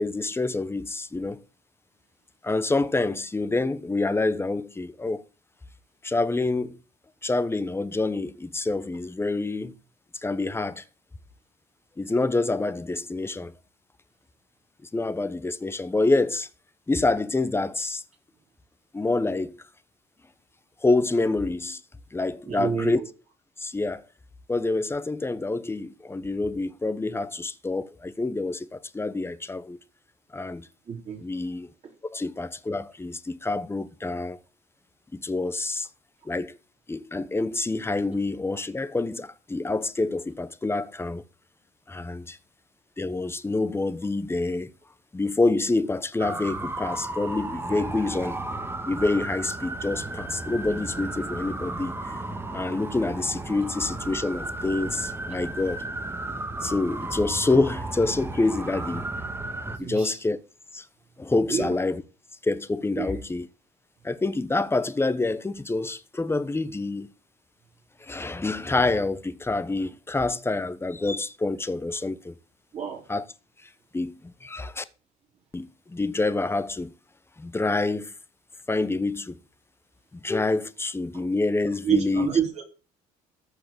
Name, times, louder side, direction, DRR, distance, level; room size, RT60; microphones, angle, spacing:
voice 1, 0.0-1.4 2.4-5.2 6.0-6.8 7.2-9.7 10.1-10.8 12.0-13.5 14.9-16.5 16.9-18.0 18.9-19.6 20.8-21.8 22.1-23.0 23.6-24.0 24.5-29.8 30.3-30.7 31.2-31.7 32.1-34.4 35.1-35.9 36.2-36.6 36.9-41.2 41.9-42.4 43.0-44.7 45.1-48.4 48.9-52.2 52.5-55.8 56.6-59.1 59.8-60.4 60.7-60.9 61.2-62.0 62.4-63.5 64.0-67.1 68.0-72.3 73.1-73.2 73.6-74.8 75.5-76.9 77.4-78.1 78.7-79.4 80.1-82.3, left 2 dB, 15° left, 1.1 m, -27 dB
voice 2, 22.5-23.1 30.9-31.2 31.8-31.9 59.7-60.2 61.5-61.7 63.0-63.2 72.7-73.0 81.8-82.6, right 7 dB, 40° right, 4.3 m, -28 dB
sound 1, 46.2-59.8, right 2 dB, 15° right, 1.8 m, -34 dB
14.5 x 5.0 x 8.5 m
cardioid pair, 95°, 17 cm